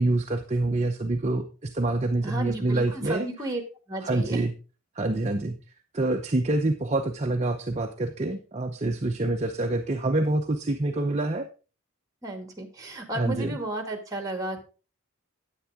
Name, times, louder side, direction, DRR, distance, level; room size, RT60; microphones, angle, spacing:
voice 1, 0.0-3.3 4.0-4.5 5.0-5.6 5.9-11.5 13.1-13.5, right 2 dB, 30° right, 3 dB, 0.7 m, -26 dB
voice 2, 2.2-3.6 3.9-4.4 12.2-14.6, right 1 dB, 15° right, 5 dB, 1.9 m, -33 dB
10.0 x 8.9 x 3.6 m, 0.34 s
head